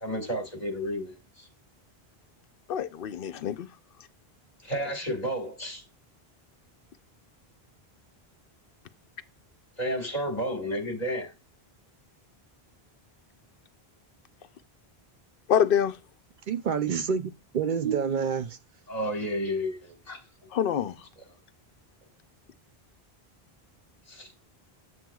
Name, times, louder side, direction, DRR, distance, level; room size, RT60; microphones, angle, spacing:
voice 1, 0.0-1.5 4.6-5.8 9.8-11.3 18.9-20.2 21.2-21.3 24.1-24.3, equal, 40° left, 1.7 m, -32 dB
voice 2, 2.7-3.7 15.5-15.9 20.5-20.9, left 9 dB, 65° left, 0.8 m, -25 dB
voice 3, 16.5-18.6, right 6 dB, 55° right, 0.6 m, -28 dB
7.7 x 7.5 x 2.3 m
omnidirectional pair, 1.0 m